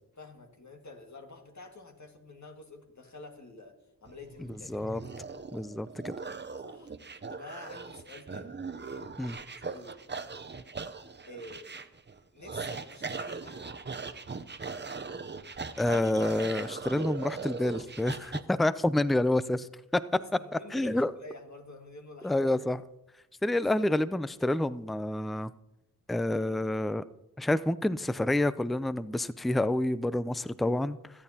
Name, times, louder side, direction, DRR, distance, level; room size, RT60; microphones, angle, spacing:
voice 1, 0.2-4.7 6.6-6.9 7.3-8.6 9.6-10.2 11.3-11.7 12.3-13.9 20.2-22.5 23.8-23.9, left 2 dB, 55° left, 3 dB, 1.9 m, -48 dB
sound 1, 4.1-18.4, right 4 dB, 30° right, 0.7 m, -40 dB
voice 2, 4.7-5.0 5.5-6.1 9.2-9.4 15.8-20.0 20.7-21.1 22.2-22.8 23.4-25.5 26.1-27.0 27.4-31.0, left 1 dB, ahead, 15 dB, 0.4 m, -28 dB
24.0 x 8.8 x 2.8 m, 0.90 s
cardioid pair, 45°, 35 cm